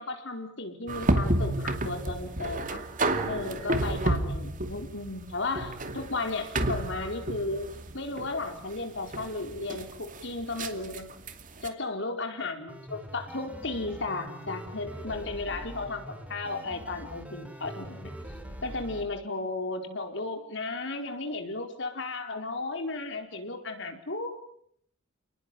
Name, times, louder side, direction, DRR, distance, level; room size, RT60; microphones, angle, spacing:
voice 1, 0.0-2.8 3.2-7.7 7.9-11.1 11.6-18.1 18.6-24.4, left 3 dB, 65° left, 5 dB, 4.6 m, -34 dB
sound 1, 0.9-11.7, right 1 dB, 45° right, 2.6 m, -31 dB
sound 2, 12.7-19.0, equal, 5° right, 4.4 m, -43 dB
30.0 x 20.0 x 9.3 m, 0.70 s
head